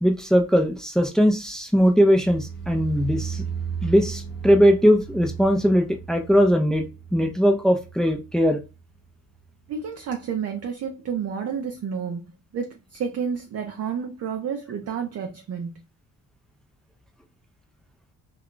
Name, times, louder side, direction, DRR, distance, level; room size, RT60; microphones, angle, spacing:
voice 1, 0.0-3.4 3.8-8.6, equal, ahead, 0.5 m, -20 dB
sound 1, 1.9-9.0 9.3-9.8 10.1-10.2, right 7 dB, 35° left, 0.9 m, -35 dB
voice 2, 9.7-15.8, right 7 dB, 45° right, 0.5 m, -30 dB
2.3 x 2.2 x 3.7 m
cardioid pair, 90°, 34 cm